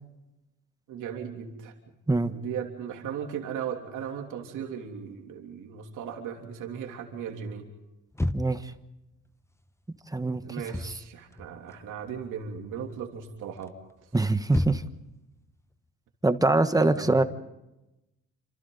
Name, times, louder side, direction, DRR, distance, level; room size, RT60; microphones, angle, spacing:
voice 1, 0.9-1.7 2.2-7.7 10.2-13.7 14.0-14.1 16.8-17.2, right 8 dB, 85° right, 2 dB, 3.1 m, -37 dB
sound 1, 8.1-8.8 10.5-11.0 11.3-12.3 12.6-13.0 13.6-15.1, left 1 dB, 10° left, 1.0 m, -32 dB
voice 2, 8.3-8.7 10.1-10.4 10.8-10.9 14.1-14.8 16.2-17.2, right 2 dB, 10° right, 10 dB, 1.2 m, -23 dB
27.5 x 27.0 x 4.0 m, 0.96 s
cardioid pair, 90°, 30 cm